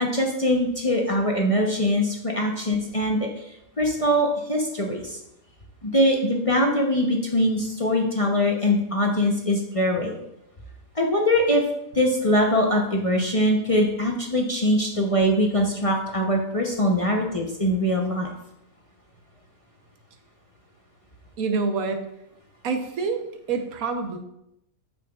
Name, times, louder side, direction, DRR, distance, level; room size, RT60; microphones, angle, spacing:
voice 1, 0.0-3.3 3.8-5.2 5.8-10.2 10.9-11.6 11.9-18.3, equal, 30° left, 0 dB, 0.7 m, -22 dB
voice 2, 21.4-22.0 22.6-24.2, right 4 dB, 85° right, 6 dB, 1.3 m, -27 dB
8.8 x 6.9 x 2.4 m, 0.81 s
omnidirectional pair, 1.5 m